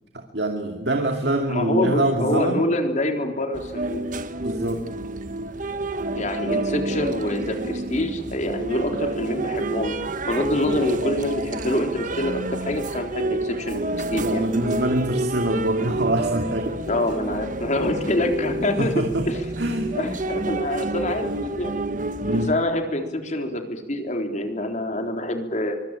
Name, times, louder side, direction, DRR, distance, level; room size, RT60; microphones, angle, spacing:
voice 1, 0.1-2.6 4.4-4.8 14.2-16.7 18.8-20.0 22.2-22.5, right 1 dB, 70° right, 3 dB, 2.6 m, -24 dB
voice 2, 1.5-4.0 6.1-10.0 10.3-13.8 14.1-14.5 16.9-18.9 19.3-19.4 19.7-21.7 22.3-25.8, left 1 dB, 45° left, 4 dB, 3.9 m, -26 dB
sound 1, 3.5-22.5, right 2 dB, 45° right, 1.4 m, -29 dB
24.5 x 23.0 x 9.1 m, 1.1 s
head